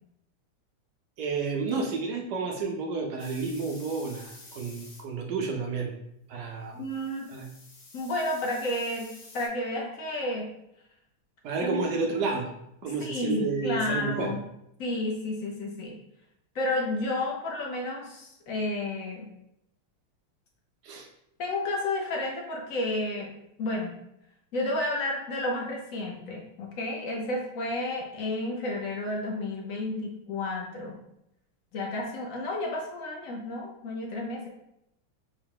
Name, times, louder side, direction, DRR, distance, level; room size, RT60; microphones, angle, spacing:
voice 1, 1.2-5.9 6.3-6.8 7.3-7.5 11.4-12.5 12.8-14.3 20.8-21.1, right 4 dB, 75° right, 1 dB, 0.9 m, -31 dB
sound 1, 3.2-5.0 6.8-9.5, left 2 dB, 55° left, 1.4 m, -50 dB
voice 2, 6.4-7.3 7.9-10.5 11.6-11.9 13.0-14.4 14.8-15.9 16.5-19.3 21.4-23.3 23.6-23.9 24.5-31.0 31.7-34.5, left 2 dB, 75° left, -1 dB, 0.7 m, -31 dB
4.7 x 2.2 x 4.7 m, 0.80 s
omnidirectional pair, 2.4 m